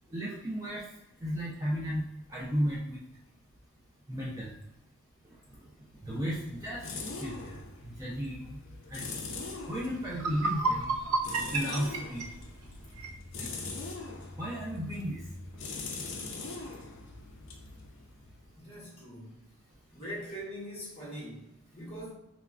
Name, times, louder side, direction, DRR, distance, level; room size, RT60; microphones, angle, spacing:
voice 1, 0.1-0.8 1.2-2.0 2.3-3.0 4.1-4.5 6.0-6.8 7.2-7.6 7.8-8.6 8.9-9.1 9.7-10.9 11.5-12.2 13.4-13.5 14.4-15.2, equal, 15° right, -6 dB, 0.3 m, -34 dB
sound 1, 5.9-18.5, left 3 dB, 55° left, 0.4 m, -42 dB
sound 2, 9.7-9.8 10.1-13.2, right 3 dB, 80° right, 0.4 m, -31 dB
voice 2, 18.6-19.4 19.9-22.1, equal, 25° left, -6 dB, 1.0 m, -42 dB
3.0 x 2.2 x 2.4 m, 0.88 s
head